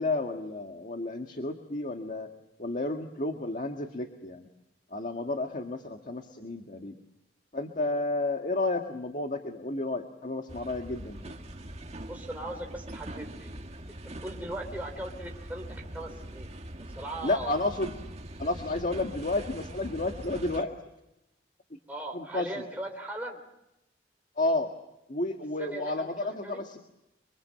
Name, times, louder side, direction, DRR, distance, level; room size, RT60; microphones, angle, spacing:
voice 1, 0.0-2.3 2.6-4.5 4.9-7.0 7.5-11.3 17.2-17.9 18.4-20.7 21.7-21.8 22.1-22.7 24.4-24.7 25.1-26.8, left 2 dB, 45° left, 5 dB, 1.7 m, -31 dB
sound 1, 10.5-20.6, right 1 dB, 40° right, 1.8 m, -42 dB
voice 2, 12.1-13.6 13.9-16.5 17.0-17.6 21.9-23.4 25.6-26.6, right 1 dB, 10° right, 0 dB, 3.5 m, -39 dB
29.5 x 24.0 x 7.7 m, 0.89 s
head